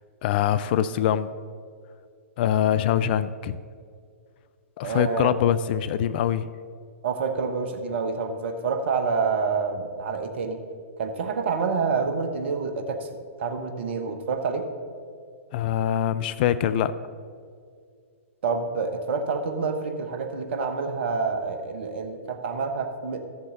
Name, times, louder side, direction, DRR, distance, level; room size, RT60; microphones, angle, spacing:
voice 1, 0.2-1.3 2.4-3.6 4.8-6.5 15.5-16.9, left 10 dB, 40° left, 14 dB, 0.4 m, -23 dB
voice 2, 4.8-5.4 7.0-10.6 11.0-13.1 13.4-14.7 18.4-23.2, right 5 dB, 55° right, 6 dB, 1.1 m, -27 dB
14.0 x 7.0 x 3.9 m, 2.2 s
figure-of-eight pair, 110°, 7 cm